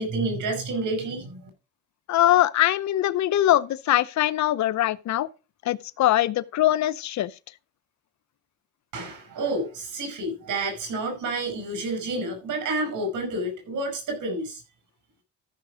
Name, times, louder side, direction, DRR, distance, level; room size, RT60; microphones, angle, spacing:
voice 1, 0.0-1.5 8.9-14.6, right 2 dB, 80° right, 5.7 m, -29 dB
voice 2, 2.1-5.3 5.7-7.3, left 13 dB, 65° left, 0.8 m, -22 dB
13.5 x 6.1 x 4.9 m
cardioid pair, 90°, 30 cm